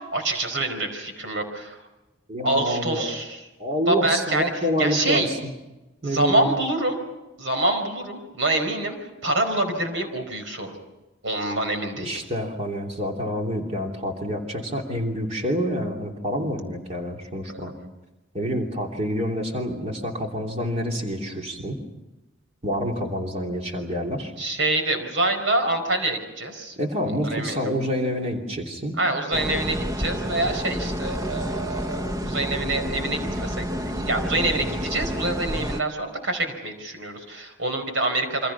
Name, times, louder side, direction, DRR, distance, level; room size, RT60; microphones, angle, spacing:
voice 1, 0.1-1.8 2.4-3.4 3.9-4.5 4.8-5.3 6.0-7.0 7.4-9.0 9.2-10.8 11.2-12.1 17.5-17.6 24.4-26.8 27.2-27.7 29.0-38.5, right 2 dB, 85° right, 6 dB, 4.7 m, -26 dB
voice 2, 2.3-3.1 3.6-5.5 6.0-6.6 12.0-17.7 18.3-21.8 22.6-24.3 26.8-28.9, equal, 35° right, 1 dB, 3.1 m, -27 dB
sound 1, 29.3-35.8, equal, 15° right, 0.9 m, -29 dB
28.0 x 25.0 x 5.9 m, 1.0 s
head